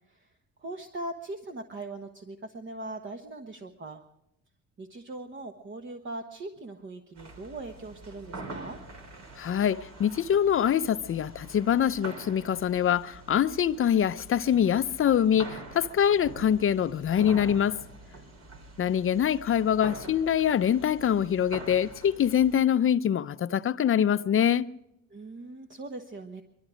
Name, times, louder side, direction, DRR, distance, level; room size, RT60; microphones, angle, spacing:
voice 1, 0.6-4.0 4.8-8.8 25.1-26.4, right 2 dB, 40° right, 1.3 m, -40 dB
sound 1, 7.1-22.5, right 2 dB, 60° right, 3.5 m, -45 dB
voice 2, 9.4-17.8 18.8-24.7, left 9 dB, 45° left, 0.6 m, -24 dB
22.0 x 13.0 x 5.0 m
cardioid pair, 90°, 30 cm